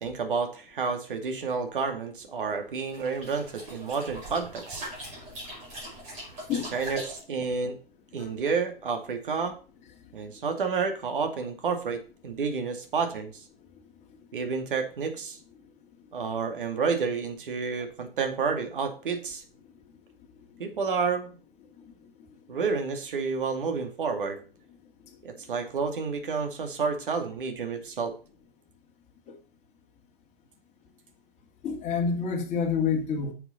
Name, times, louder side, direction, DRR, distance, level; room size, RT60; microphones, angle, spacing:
voice 1, 0.0-4.9 6.6-7.8 8.1-9.5 10.1-13.4 14.3-15.4 16.1-19.4 20.6-21.3 22.5-24.4 25.2-28.1, right 5 dB, 60° right, 5 dB, 2.3 m, -30 dB
sound 1, 2.8-7.2, right 1 dB, 20° right, 5.3 m, -41 dB
voice 2, 31.6-33.3, left 6 dB, 20° left, 1 dB, 2.3 m, -28 dB
9.9 x 6.9 x 4.3 m, 0.37 s
figure-of-eight pair, 115°, 29 cm